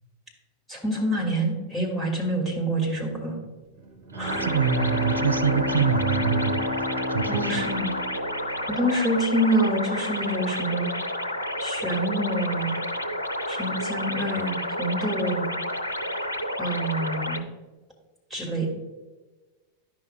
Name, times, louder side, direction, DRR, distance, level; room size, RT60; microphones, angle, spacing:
voice 1, 0.7-3.4 4.2-4.5 7.3-7.9 8.7-10.9 11.6-12.7 13.5-15.6 16.6-17.4 18.3-18.7, right 1 dB, 5° right, -4 dB, 2.1 m, -27 dB
Bowed string instrument, 3.8-9.3, left 1 dB, 35° right, 1.2 m, -31 dB
voice 2, 4.1-7.6, right 6 dB, 80° right, 10 dB, 0.4 m, -26 dB
sound 1, 4.3-17.4, equal, 85° left, 0.5 m, -30 dB
10.5 x 5.7 x 2.2 m, 1.2 s
figure-of-eight pair, 90°, 0 cm